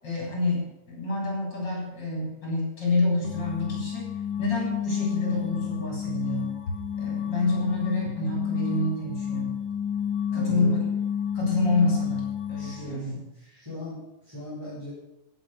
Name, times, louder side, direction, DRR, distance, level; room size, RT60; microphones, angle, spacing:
voice 1, 0.0-4.1 4.4-6.5 7.0-9.5 10.3-10.9 11.3-13.2, left 2 dB, 35° left, -2 dB, 8.3 m, -28 dB
sound 1, 3.2-13.0, left 8 dB, 65° left, 1.2 m, -30 dB
voice 2, 10.3-10.7 12.6-14.9, left 1 dB, 5° right, -10 dB, 6.8 m, -39 dB
17.5 x 9.0 x 7.0 m, 0.87 s
omnidirectional pair, 3.3 m